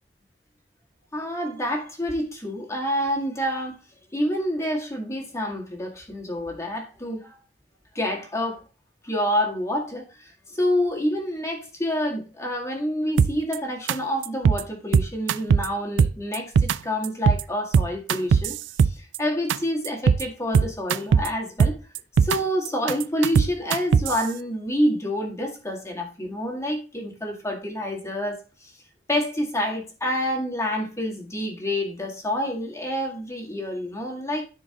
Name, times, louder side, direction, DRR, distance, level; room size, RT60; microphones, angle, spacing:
voice 1, 1.1-3.8 4.1-7.4 8.0-8.6 9.0-21.8 22.2-28.7 29.1-34.4, equal, 15° left, 1.8 m, -28 dB
sound 1, 13.2-13.6 13.9-14.0 14.2-14.6 14.9-15.7 16.0-16.8 17.0-17.4 17.7-19.2 19.5-19.6 19.8-20.2 20.5-21.3 21.6-22.4 22.7-24.2, right 6 dB, 80° right, 0.3 m, -19 dB
13.5 x 4.6 x 2.9 m
head